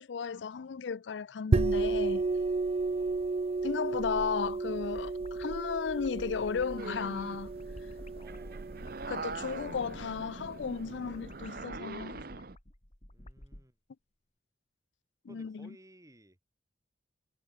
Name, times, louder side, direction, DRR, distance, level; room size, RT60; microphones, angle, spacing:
voice 1, 0.0-2.3 3.6-7.5 9.1-12.3 15.3-15.7, left 6 dB, 85° left, 0.5 m, -35 dB
sound 1, 1.5-10.9, right 3 dB, 35° right, 0.4 m, -33 dB
voice 2, 2.8-3.3 8.2-8.8 13.1-13.8 15.3-16.4, right 1 dB, 20° right, 6.8 m, -58 dB
sound 2, 4.7-13.7, left 1 dB, 40° left, 3.0 m, -51 dB
sound 3, 6.8-12.6, right 3 dB, 55° right, 1.1 m, -43 dB
head